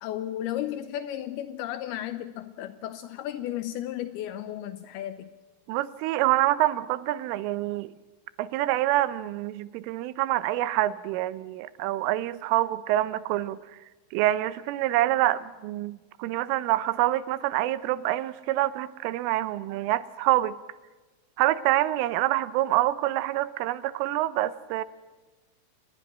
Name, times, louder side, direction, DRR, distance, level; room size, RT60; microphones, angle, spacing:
voice 1, 0.0-5.3, left 12 dB, 85° left, 11 dB, 2.2 m, -34 dB
voice 2, 5.7-7.9 8.4-13.6 14.1-20.6 21.4-24.8, right 15 dB, 85° right, 16 dB, 3.4 m, -26 dB
27.5 x 20.5 x 6.2 m, 1.2 s
omnidirectional pair, 5.6 m